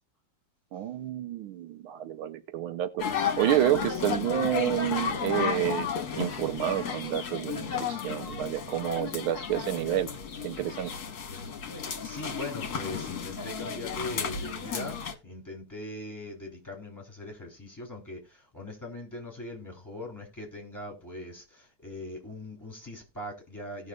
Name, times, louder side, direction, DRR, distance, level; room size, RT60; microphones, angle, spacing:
voice 1, 0.7-3.1 3.4-5.9 6.2-10.1 10.4-10.9, right 12 dB, 80° right, 1.5 m, -29 dB
sound 1, 3.0-15.1, left 7 dB, 50° left, 1.6 m, -33 dB
voice 2, 12.0-23.9, left 1 dB, 10° left, 3.4 m, -41 dB
18.0 x 6.3 x 2.4 m
omnidirectional pair, 2.3 m